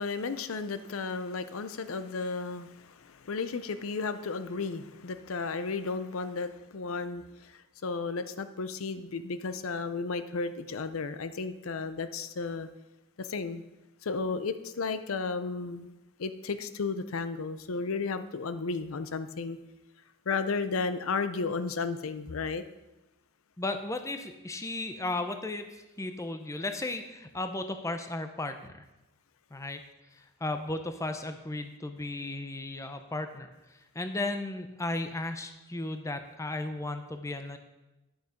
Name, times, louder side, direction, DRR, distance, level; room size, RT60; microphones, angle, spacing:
voice 1, 0.0-12.7 13.2-13.6 14.0-15.9 16.2-19.6 20.3-22.6, left 4 dB, 75° left, 11 dB, 0.6 m, -33 dB
voice 2, 23.6-28.9 29.5-29.8 30.1-37.6, left 2 dB, 15° left, 8 dB, 0.6 m, -35 dB
10.5 x 6.7 x 5.0 m, 0.99 s
head